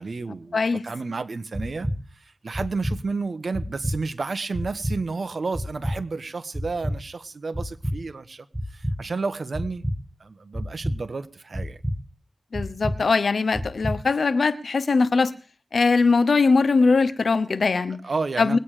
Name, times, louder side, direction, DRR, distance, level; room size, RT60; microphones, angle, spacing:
voice 1, 0.0-9.8 10.2-11.8 18.0-18.6, right 4 dB, 75° right, 12 dB, 1.1 m, -31 dB
sound 1, 1.5-2.0 2.5-3.0 3.5-4.0 4.5-5.0 5.5-6.0 6.5-7.0 7.5-8.0 8.5-9.0 9.5-10.0 10.5-11.0 11.5-12.0 12.5-13.0 13.5-14.0, equal, 5° right, 2.1 m, -27 dB
voice 2, 12.5-15.3 15.7-18.0 18.4-18.6, left 4 dB, 85° left, 14 dB, 1.0 m, -21 dB
21.0 x 9.1 x 4.9 m, 0.39 s
wide cardioid pair, 60°, 0 cm